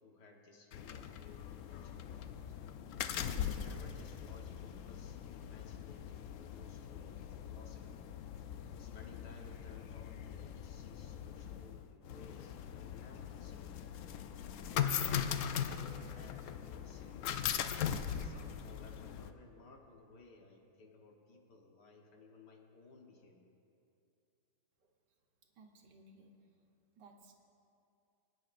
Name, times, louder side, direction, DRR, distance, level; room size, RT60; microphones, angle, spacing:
voice 1, 0.0-2.4 3.3-8.1 8.8-13.8 14.7-17.6 18.2-23.5, left 3 dB, 70° left, 1 dB, 1.8 m, -58 dB
sound 1, 0.7-19.3, left 9 dB, 85° left, 0.6 m, -40 dB
voice 2, 25.6-26.3 27.0-27.3, right 3 dB, 75° right, 2 dB, 1.6 m, -59 dB
23.0 x 9.6 x 2.5 m, 2.7 s
omnidirectional pair, 1.9 m